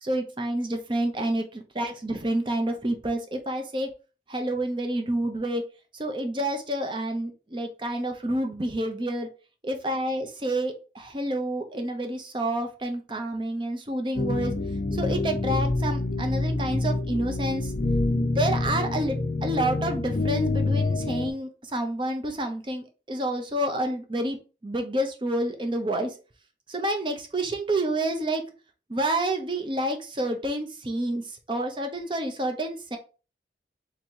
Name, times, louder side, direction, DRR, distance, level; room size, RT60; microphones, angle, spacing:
voice 1, 0.0-3.9 4.3-5.6 5.9-9.3 9.6-14.5 14.9-17.7 18.1-24.4 24.6-26.1 26.7-28.4 28.9-33.0, right 1 dB, 25° right, 4 dB, 0.7 m, -29 dB
sound 1, 14.2-21.3, left 2 dB, 40° left, 0.5 m, -27 dB
3.6 x 2.9 x 4.4 m, 0.35 s
head